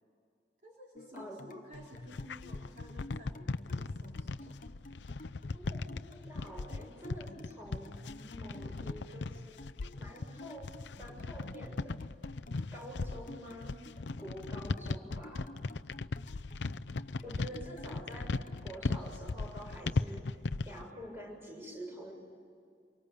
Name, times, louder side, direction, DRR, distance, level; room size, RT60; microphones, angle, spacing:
voice 1, 0.6-4.6, equal, 40° right, -3 dB, 3.9 m, -54 dB
sound 1, 1.0-18.7, left 1 dB, 45° left, 0.8 m, -51 dB
sound 2, 1.7-20.8, left 3 dB, 75° left, 0.6 m, -38 dB
voice 2, 5.5-9.6 9.9-12.0 12.7-13.8 14.2-15.5 17.2-20.4 20.7-22.1, equal, 15° right, -1 dB, 6.9 m, -47 dB
27.0 x 24.0 x 8.5 m, 2.3 s
head